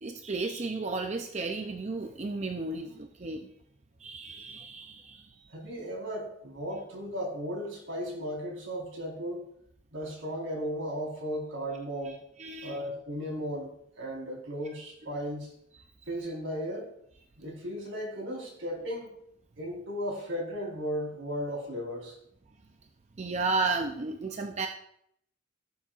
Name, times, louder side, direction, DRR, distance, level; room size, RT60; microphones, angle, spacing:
voice 1, 0.0-3.5 4.0-5.5 12.1-12.2 12.4-12.8 23.2-24.7, right 3 dB, 35° right, 4 dB, 0.5 m, -33 dB
voice 2, 5.5-9.4 9.9-12.2 12.6-15.5 16.1-16.9 17.4-19.1 19.6-22.1, equal, 80° right, -2 dB, 4.3 m, -35 dB
17.5 x 7.2 x 2.5 m, 0.72 s
head